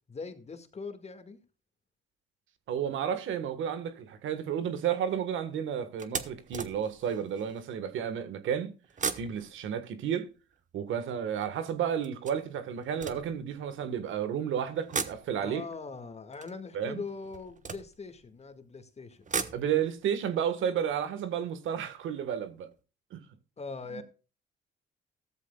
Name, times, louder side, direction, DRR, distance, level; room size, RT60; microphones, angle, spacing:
voice 1, 0.1-1.4 15.4-19.2 23.6-24.0, left 4 dB, 35° left, 2.0 m, -41 dB
voice 2, 2.7-8.7 9.2-10.3 10.7-15.6 16.7-17.0 19.5-22.7 23.1-23.2 23.9-24.0, right 8 dB, 80° right, 1.5 m, -32 dB
sound 1, 3.6-3.9 4.5-4.7 5.1-5.2 6.0-7.7 8.8-11.2 12.0-14.0 14.7-18.5 19.0-22.0 22.3-22.4 22.7-22.8, right 5 dB, 40° right, 1.3 m, -40 dB
15.5 x 13.5 x 2.3 m
cardioid pair, 90°, 20 cm